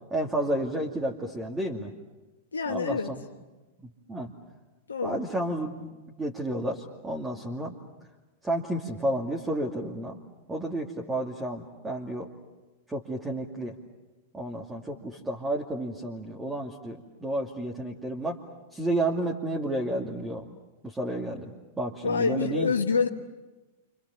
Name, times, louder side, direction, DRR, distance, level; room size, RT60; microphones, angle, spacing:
voice 1, 0.1-1.9 2.7-3.2 4.1-4.3 5.0-7.7 8.4-10.2 10.5-12.3 12.9-13.8 14.3-18.4 18.7-20.5 20.8-22.7, right 1 dB, 15° right, -1 dB, 2.6 m, -31 dB
voice 2, 2.5-3.1 4.9-5.2 22.0-23.1, left 5 dB, 80° left, 2 dB, 1.4 m, -26 dB
29.5 x 27.5 x 7.2 m, 1.1 s
figure-of-eight pair, 100°, 0 cm